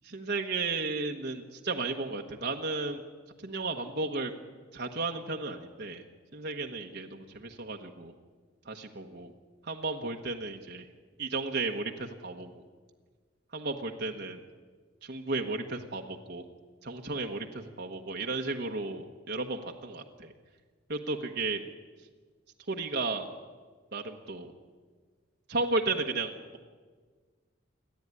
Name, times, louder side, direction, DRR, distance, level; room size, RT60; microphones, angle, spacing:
voice 1, 0.0-3.0 3.4-4.3 4.7-6.0 6.3-8.1 8.6-9.3 9.6-10.9 11.2-12.6 13.5-14.4 15.0-16.4 16.8-20.3 20.9-21.6 22.7-23.3 23.9-24.5 25.5-26.3, right 3 dB, 55° right, 2 dB, 1.4 m, -34 dB
28.5 x 11.5 x 9.8 m, 1.5 s
head